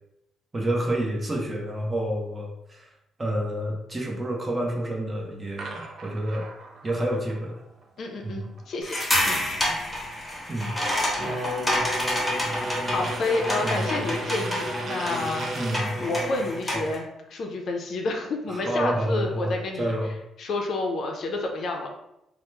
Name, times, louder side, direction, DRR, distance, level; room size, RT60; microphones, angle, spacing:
voice 1, 0.5-2.9 3.2-6.4 6.8-7.6 8.2-8.5 10.5-10.8 13.6-14.0 15.5-15.9 16.7-16.8 18.5-20.1, right 1 dB, 25° right, -1 dB, 0.7 m, -29 dB
sound 1, 5.6-9.6 10.0-15.9, right 3 dB, 60° right, 0.4 m, -41 dB
voice 2, 8.0-9.0 9.3-9.4 12.9-15.5 16.0-17.0 17.3-19.9 20.4-21.9, left 2 dB, 60° left, 2 dB, 0.5 m, -29 dB
sound 2, 8.8-17.0, left 1 dB, 15° left, 0.9 m, -29 dB
Bowed string instrument, 11.2-16.8, equal, 75° right, 0.8 m, -33 dB
2.9 x 2.0 x 3.2 m, 0.85 s
cardioid pair, 90°, 0 cm